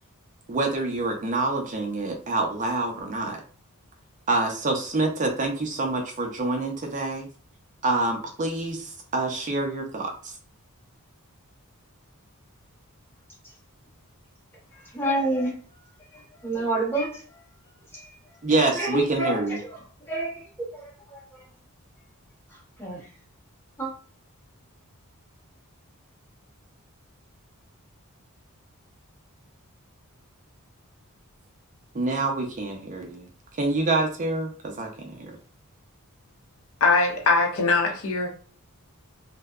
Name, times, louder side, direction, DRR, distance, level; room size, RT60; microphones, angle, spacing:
voice 1, 0.5-3.4 4.3-7.3 7.8-10.3 18.4-19.6 31.9-33.3 33.6-35.4, right 2 dB, 35° right, 2 dB, 0.5 m, -26 dB
voice 2, 14.9-15.5 16.4-17.2 17.9-18.0 18.8-19.4 20.1-20.9 22.8-23.0 23.8-23.9, right 2 dB, 10° left, -4 dB, 0.8 m, -27 dB
voice 3, 36.8-38.3, left 3 dB, 65° left, 2 dB, 0.6 m, -21 dB
2.6 x 2.0 x 2.3 m, 0.42 s
head